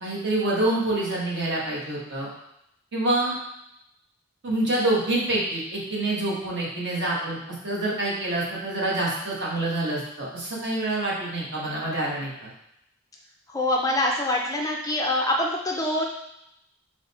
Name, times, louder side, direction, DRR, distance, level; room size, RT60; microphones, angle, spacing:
voice 1, 0.0-2.3 2.9-3.4 4.4-7.4 7.6-12.5, right 2 dB, 55° right, -4 dB, 1.3 m, -26 dB
voice 2, 13.5-16.1, left 1 dB, 15° left, 0 dB, 0.4 m, -24 dB
3.9 x 3.2 x 4.1 m, 0.80 s
head